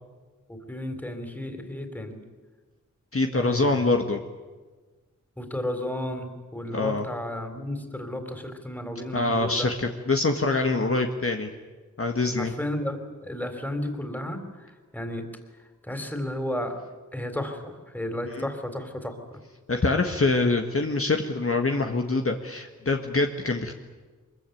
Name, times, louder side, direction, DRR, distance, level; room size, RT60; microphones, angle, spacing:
voice 1, 0.5-2.2 3.3-3.9 5.4-9.7 12.4-15.3 15.8-16.8 17.1-19.2, left 1 dB, 5° left, 6 dB, 3.8 m, -33 dB
voice 2, 3.1-4.2 6.7-7.1 9.1-11.5 12.0-12.5 18.3-18.5 19.7-23.7, left 3 dB, 45° left, 3 dB, 1.7 m, -25 dB
24.5 x 22.5 x 9.4 m, 1.3 s
wide cardioid pair, 75°, 32 cm